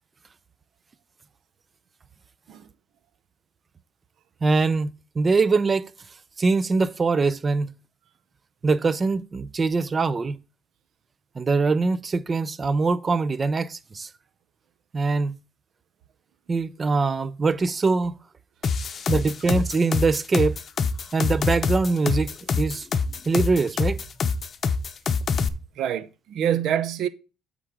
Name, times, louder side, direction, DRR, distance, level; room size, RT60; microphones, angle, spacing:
voice 1, 4.4-4.9 5.2-5.9 6.4-7.7 8.6-10.4 11.4-14.1 14.9-15.3 16.5-18.2 19.1-20.6 21.1-22.9 23.3-24.0, right 4 dB, 30° right, 0.5 m, -23 dB
sound 1, 18.6-25.5, left 5 dB, 40° left, 0.7 m, -25 dB
voice 2, 25.8-27.1, right 9 dB, 70° right, 0.7 m, -26 dB
8.2 x 3.7 x 6.0 m
cardioid pair, 105°, 0 cm